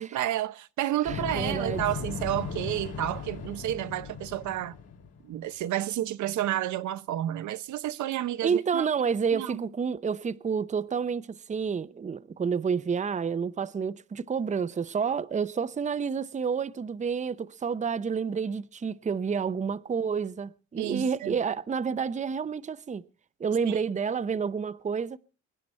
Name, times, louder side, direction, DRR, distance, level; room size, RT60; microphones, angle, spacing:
voice 1, 0.0-4.7 5.2-8.9 9.3-9.7 20.8-21.4 23.7-23.8, right 13 dB, 75° right, 0.8 m, -31 dB
voice 2, 1.0-1.8 8.4-23.0 23.4-25.2, right 6 dB, 25° right, 0.6 m, -29 dB
sound 1, 1.1-5.2, left 5 dB, 55° left, 2.7 m, -37 dB
23.5 x 10.0 x 4.3 m
cardioid pair, 90°, 30 cm